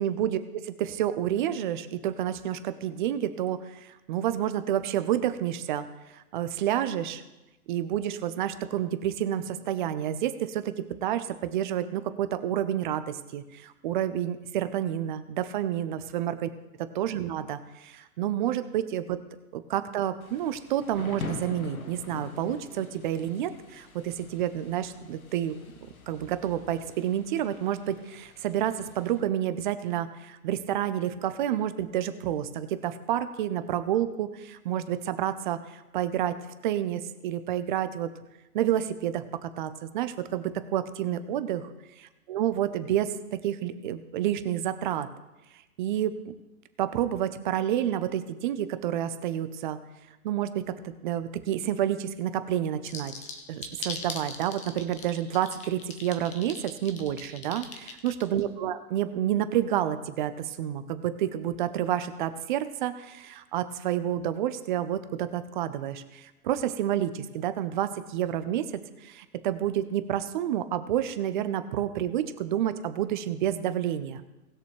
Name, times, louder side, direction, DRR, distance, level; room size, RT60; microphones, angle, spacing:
voice 1, 0.0-5.8 6.1-7.2 7.7-10.7 11.0-16.5 16.9-19.2 19.5-25.6 26.1-36.4 36.6-38.1 38.5-41.6 42.3-45.1 45.8-46.2 46.8-49.8 50.2-53.1 53.5-68.7 69.0-74.2, right 11 dB, 35° right, 12 dB, 0.8 m, -29 dB
Thunder / Rain, 20.2-29.2, left 3 dB, 75° left, 1.7 m, -44 dB
sound 1, 52.9-58.4, left 5 dB, 15° left, 1.2 m, -39 dB
19.0 x 6.7 x 3.3 m, 1.0 s
hypercardioid pair, 130°, 43 cm